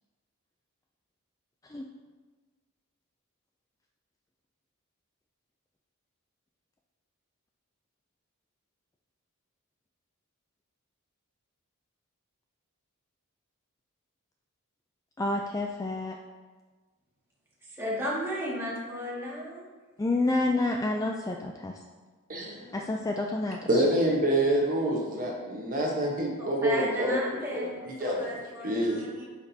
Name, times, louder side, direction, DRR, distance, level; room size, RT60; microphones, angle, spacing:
voice 1, 15.2-16.2 20.0-21.8 22.7-23.8, left 2 dB, 15° left, 1 dB, 0.3 m, -29 dB
voice 2, 17.6-19.7 26.4-29.3, equal, 10° right, -7 dB, 1.9 m, -34 dB
voice 3, 22.3-22.7 23.7-27.2 27.5-27.7 28.0-28.3 28.6-29.1, right 1 dB, 40° right, -2 dB, 1.1 m, -27 dB
9.6 x 5.9 x 2.8 m, 1.4 s
head